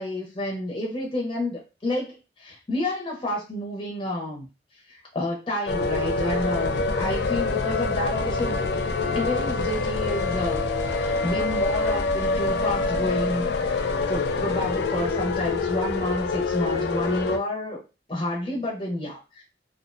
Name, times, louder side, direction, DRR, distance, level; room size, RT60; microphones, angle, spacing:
voice 1, 0.0-4.5 4.9-8.6 9.1-17.8 18.1-19.4, left 1 dB, 25° left, -2 dB, 0.6 m, -30 dB
sound 1, 5.7-17.4, left 3 dB, 70° left, 0.3 m, -26 dB
2.4 x 2.1 x 2.5 m, 0.29 s
head